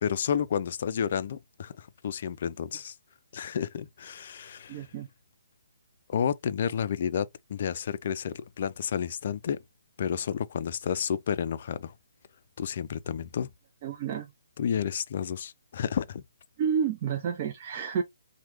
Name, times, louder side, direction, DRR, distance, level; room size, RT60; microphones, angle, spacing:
voice 1, 0.0-3.0 3.3-4.9 6.1-9.6 10.0-11.9 12.6-13.5 14.6-16.2, left 8 dB, 50° left, 0.3 m, -31 dB
voice 2, 4.7-5.1 13.8-14.3 16.6-18.0, right 7 dB, 35° right, 0.5 m, -30 dB
3.1 x 2.2 x 2.9 m
figure-of-eight pair, 145°, 0 cm